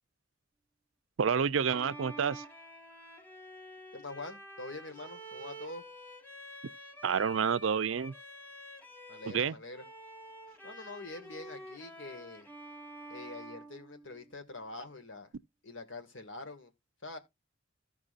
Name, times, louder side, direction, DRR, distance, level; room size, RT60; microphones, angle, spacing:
voice 1, 1.2-2.4 7.0-8.1 9.3-9.5, right 6 dB, 85° right, 0.5 m, -29 dB
Bowed string instrument, 1.6-9.4 9.7-14.5, right 1 dB, 10° left, 1.8 m, -49 dB
voice 2, 3.9-5.8 9.1-9.8 10.6-12.5 13.1-15.3 15.6-16.7 17.0-17.2, left 2 dB, 75° left, 1.9 m, -45 dB
15.0 x 6.0 x 2.5 m
head